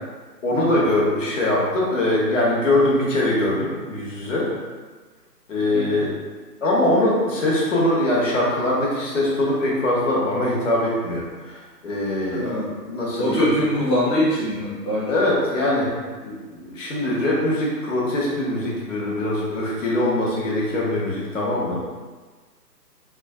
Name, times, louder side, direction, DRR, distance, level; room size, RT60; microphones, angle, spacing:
voice 1, 0.4-4.5 5.5-6.2 6.6-12.5 12.8-13.5 15.1-15.9 16.2-21.8, left 1 dB, 50° left, -5 dB, 1.0 m, -22 dB
voice 2, 12.3-12.7 13.2-15.1, left 1 dB, 15° left, -12 dB, 0.8 m, -22 dB
3.3 x 2.5 x 2.3 m, 1.4 s
figure-of-eight pair, 140°, 50 cm